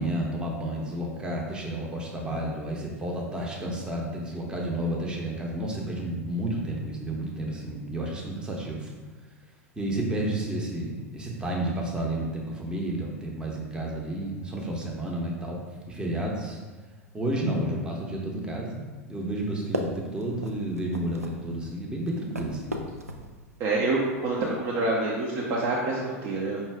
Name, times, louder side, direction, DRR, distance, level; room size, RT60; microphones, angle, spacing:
voice 1, 0.0-8.9 9.8-16.6 17.1-22.8, right 1 dB, 10° right, -2 dB, 0.8 m, -31 dB
sound 1, 19.4-24.6, equal, 90° right, 0.4 m, -38 dB
voice 2, 23.6-26.6, right 2 dB, 45° right, -4 dB, 0.6 m, -27 dB
5.5 x 2.4 x 3.5 m, 1.3 s
figure-of-eight pair, 90°, 8 cm